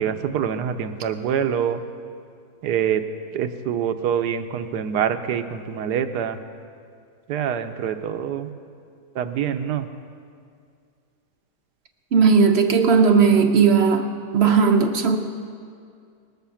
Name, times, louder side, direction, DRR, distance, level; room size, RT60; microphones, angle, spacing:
voice 1, 0.0-1.8 2.6-3.0 3.3-6.4 7.3-8.5 9.1-9.9, right 8 dB, 75° right, 9 dB, 1.3 m, -25 dB
voice 2, 12.1-14.1 14.3-15.2, right 5 dB, 55° right, 6 dB, 0.8 m, -16 dB
19.5 x 8.1 x 7.0 m, 2.3 s
omnidirectional pair, 1.8 m